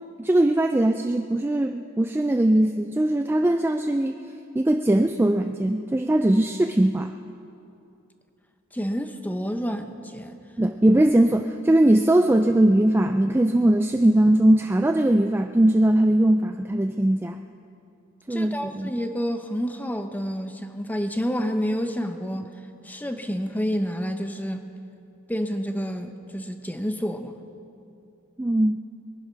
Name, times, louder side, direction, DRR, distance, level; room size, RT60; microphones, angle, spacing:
voice 1, 0.2-4.1 4.5-7.1 10.6-17.4 18.3-18.9 28.4-28.8, right 1 dB, 10° right, 6 dB, 0.3 m, -20 dB
voice 2, 8.7-10.4 18.3-22.5 22.8-24.7 25.3-27.3, equal, 10° left, 7 dB, 0.8 m, -29 dB
22.5 x 10.5 x 5.8 m, 2.7 s
head